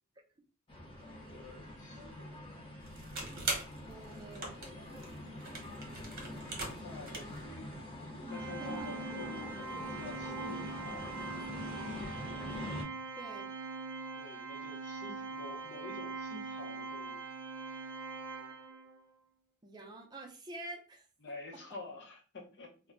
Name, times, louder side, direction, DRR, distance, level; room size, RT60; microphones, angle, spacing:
sound 1, 0.7-12.8, left 1 dB, 25° left, 0.7 m, -44 dB
voice 1, 1.1-2.4 6.6-7.9 8.3-12.2 14.2-17.2 21.2-22.7, left 3 dB, 55° left, 1 dB, 0.7 m, -49 dB
sound 2, 2.8-7.4, right 2 dB, 45° right, 0.9 m, -42 dB
voice 2, 3.8-4.5 8.6-8.9 13.2-13.5 19.6-21.1 21.5-21.6, right 2 dB, 20° right, 1 dB, 0.5 m, -47 dB
Organ, 8.3-19.0, right 4 dB, 85° right, 0.4 m, -42 dB
2.2 x 2.1 x 3.5 m, 0.37 s
head